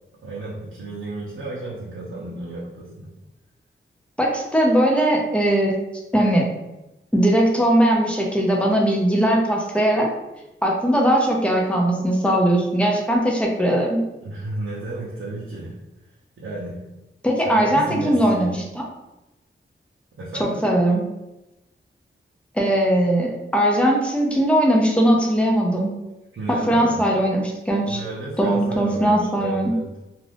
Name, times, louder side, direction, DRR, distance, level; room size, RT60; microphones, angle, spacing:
voice 1, 0.2-3.1 14.2-15.8 16.4-16.8 17.4-18.6 20.2-20.6 26.3-27.0 27.9-29.9, right 2 dB, 80° right, -6 dB, 0.7 m, -32 dB
voice 2, 4.2-5.8 6.1-6.4 7.1-10.1 10.6-14.0 17.2-18.8 20.4-21.0 22.5-25.9 26.5-28.0 28.4-29.7, right 1 dB, 5° left, -1 dB, 0.6 m, -19 dB
2.5 x 2.4 x 3.3 m, 0.99 s
wide cardioid pair, 85°, 21 cm